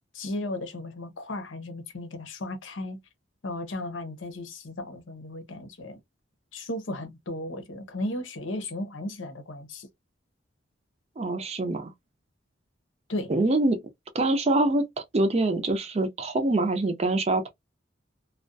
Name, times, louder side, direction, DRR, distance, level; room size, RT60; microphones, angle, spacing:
voice 1, 0.1-3.0 3.4-6.0 6.5-9.9 13.1-13.3, left 1 dB, 80° left, 0.7 m, -35 dB
voice 2, 11.2-11.9 13.3-13.8 14.1-14.9 15.1-17.5, right 2 dB, 35° right, 0.5 m, -24 dB
2.3 x 2.2 x 2.5 m
head